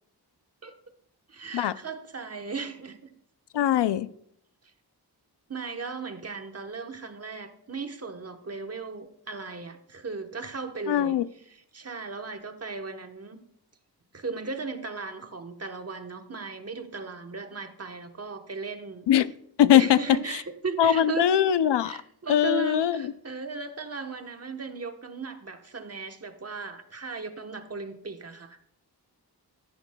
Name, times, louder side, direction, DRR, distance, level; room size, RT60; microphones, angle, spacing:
voice 1, 1.3-3.1 5.5-11.2 11.5-13.4 14.1-19.0 19.7-21.3 21.8-28.6, right 4 dB, 35° right, 6 dB, 1.0 m, -36 dB
voice 2, 3.5-4.1 10.9-11.3 19.1-19.3 19.6-20.0 20.3-20.4 20.8-22.0 22.3-23.1, left 10 dB, 85° left, 15 dB, 0.5 m, -21 dB
14.5 x 10.0 x 2.2 m, 0.69 s
wide cardioid pair, 95°, 40 cm